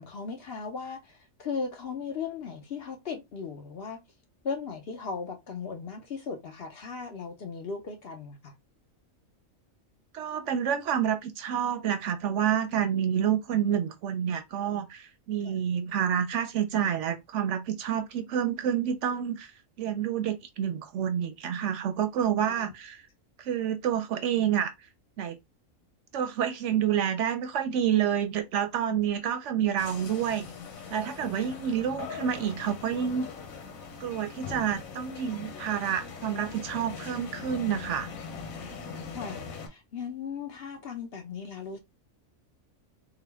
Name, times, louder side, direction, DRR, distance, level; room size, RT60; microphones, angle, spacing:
voice 1, 0.0-4.0 4.4-8.5 15.4-15.6 22.5-22.7 28.9-29.0 31.3-31.6 39.1-41.8, left 5 dB, 55° left, 0.8 m, -37 dB
voice 2, 10.1-19.5 19.8-23.0 23.4-24.7 25.2-25.4 26.1-30.5 30.9-33.3 34.0-38.1, right 9 dB, 70° right, 0.8 m, -28 dB
sound 1, 29.8-39.7, left 5 dB, 80° left, 1.2 m, -41 dB
3.7 x 2.1 x 3.4 m
omnidirectional pair, 1.4 m